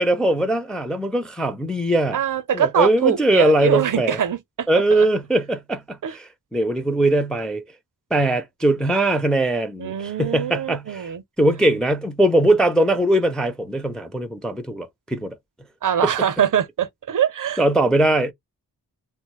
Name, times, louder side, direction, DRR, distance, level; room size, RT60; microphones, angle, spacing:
voice 1, 0.0-2.2 2.5-4.2 4.7-7.6 8.1-11.1 11.4-15.4 16.0-16.3 17.6-18.3, right 1 dB, ahead, 0.4 m, -21 dB
voice 2, 2.1-5.1 6.0-6.1 9.8-11.2 15.8-17.9, right 9 dB, 55° right, 0.6 m, -23 dB
2.7 x 2.1 x 2.9 m
wide cardioid pair, 65°, 39 cm